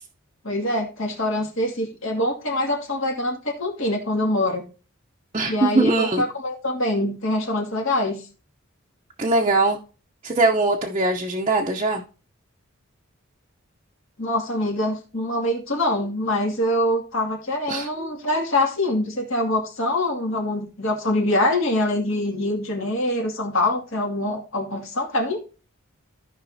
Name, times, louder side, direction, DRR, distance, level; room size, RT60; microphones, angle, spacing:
voice 1, 0.4-4.6 5.5-8.2 14.2-25.4, left 1 dB, 65° left, 1 dB, 2.3 m, -24 dB
voice 2, 5.3-6.2 9.2-9.8 10.2-12.0 17.7-17.9, right 2 dB, 30° right, 0 dB, 0.7 m, -21 dB
16.0 x 5.4 x 2.7 m, 0.36 s
head